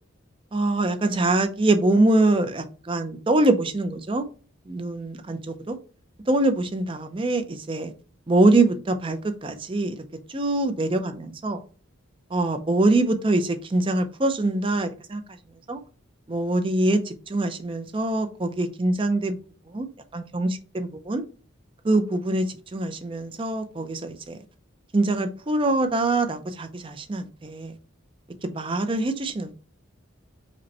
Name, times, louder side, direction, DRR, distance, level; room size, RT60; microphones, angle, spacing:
voice 1, 0.5-4.2 4.7-5.8 6.3-7.9 8.3-10.0 10.3-11.6 12.3-15.2 15.7-15.8 16.3-19.4 19.7-19.9 20.1-21.2 21.8-22.5 22.7-24.4 24.9-27.8 28.4-29.5, right 2 dB, 25° right, 0.5 m, -24 dB
5.1 x 2.2 x 4.1 m
head